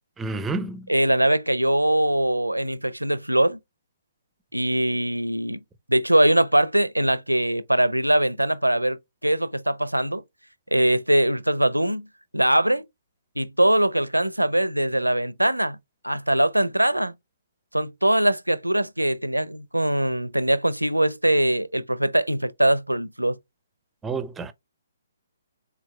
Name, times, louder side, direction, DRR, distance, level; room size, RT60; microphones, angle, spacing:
voice 1, 0.2-0.9 24.0-24.5, right 3 dB, 10° right, 0.5 m, -29 dB
voice 2, 0.9-3.6 4.5-5.6 5.9-10.2 10.7-12.1 12.3-12.8 13.4-15.8 16.0-17.1 17.7-23.4, right 1 dB, 85° right, 0.5 m, -22 dB
4.5 x 4.0 x 2.3 m
figure-of-eight pair, 130°, 0 cm